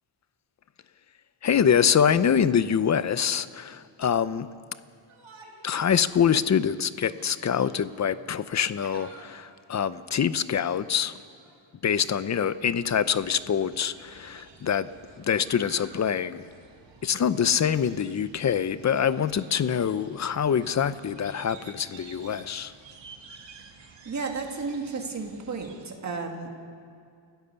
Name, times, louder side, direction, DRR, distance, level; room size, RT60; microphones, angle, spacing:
voice 1, 1.4-4.5 5.6-11.2 11.8-14.9 15.2-16.4 17.0-22.7, left 8 dB, 35° left, 14 dB, 0.6 m, -25 dB
Yell, 5.1-5.8 6.2-6.3 6.8-7.7 8.6-9.4 11.2-11.6 12.7-12.8 13.7-14.5 15.1-16.0 18.7-19.4 20.5-21.0, right 4 dB, 90° right, 3.5 m, -52 dB
sound 1, 12.8-25.9, right 5 dB, 65° right, 2.2 m, -51 dB
voice 2, 24.0-26.7, right 4 dB, 35° right, 2 dB, 2.3 m, -33 dB
29.5 x 16.5 x 6.9 m, 2.3 s
wide cardioid pair, 170°, 47 cm